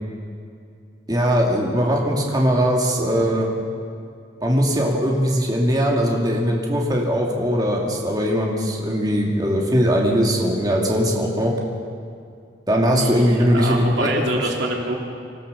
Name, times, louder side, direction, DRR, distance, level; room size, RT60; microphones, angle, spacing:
voice 1, 1.1-3.5 4.4-11.5 12.7-14.1 14.4-14.5, equal, 20° right, -1 dB, 2.5 m, -20 dB
voice 2, 13.0-15.0, right 1 dB, 80° right, 0 dB, 3.2 m, -26 dB
26.0 x 15.5 x 6.9 m, 2.4 s
head